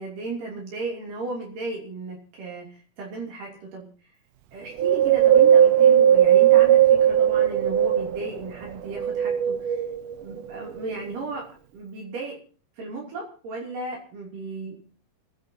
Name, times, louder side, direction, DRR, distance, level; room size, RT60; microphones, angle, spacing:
voice 1, 0.0-3.9 4.5-9.8 10.2-12.4 12.8-14.9, right 3 dB, 70° right, -2 dB, 4.7 m, -35 dB
Wind, 4.8-8.4 8.9-10.1 10.7-10.8, right 10 dB, 90° right, 1.4 m, -17 dB
29.0 x 11.0 x 2.9 m, 0.42 s
omnidirectional pair, 4.0 m